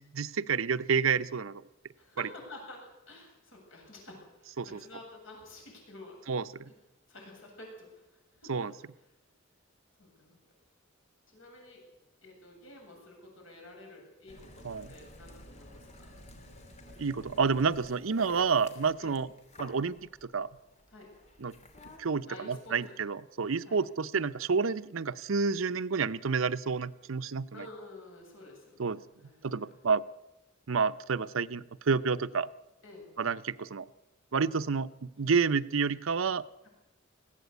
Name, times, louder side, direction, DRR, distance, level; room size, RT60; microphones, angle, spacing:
voice 1, 0.0-1.6 4.6-4.8 6.3-6.7 8.5-8.7 14.6-14.9 17.0-19.3 19.6-20.0 20.2-20.5 21.4-21.5 22.0-27.7 28.8-29.0 29.4-30.0 30.7-32.5 33.2-33.9 34.3-36.4, right 5 dB, 75° right, 15 dB, 0.7 m, -29 dB
voice 2, 2.0-6.2 7.1-7.9 8.4-8.7 10.0-10.4 11.3-11.8 12.2-16.2 19.0-19.2 20.9-21.1 22.3-23.0 23.6-23.8 27.5-28.9 29.2-29.7 32.8-33.1 35.2-35.3, left 2 dB, 70° left, 0 dB, 7.9 m, -50 dB
sound 1, 14.3-22.0, left 1 dB, 35° left, 2.8 m, -51 dB
20.5 x 16.0 x 8.2 m, 0.98 s
head